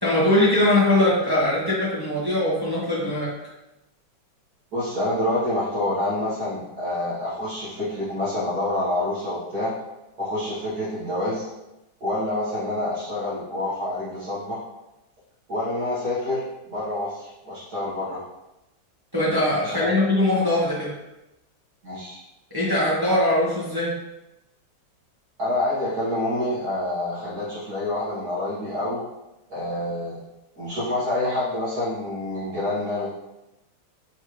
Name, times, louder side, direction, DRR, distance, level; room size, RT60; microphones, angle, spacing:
voice 1, 0.0-3.3 19.1-21.0 22.5-23.9, left 1 dB, 15° right, -9 dB, 0.9 m, -21 dB
voice 2, 4.7-9.7 10.2-11.5 12.0-14.6 15.5-16.4 16.7-18.2 19.6-19.9 21.8-22.2 25.4-29.0 29.5-30.2 30.6-33.1, left 1 dB, 60° right, -10 dB, 1.7 m, -27 dB
4.4 x 3.3 x 3.0 m, 0.95 s
omnidirectional pair, 2.0 m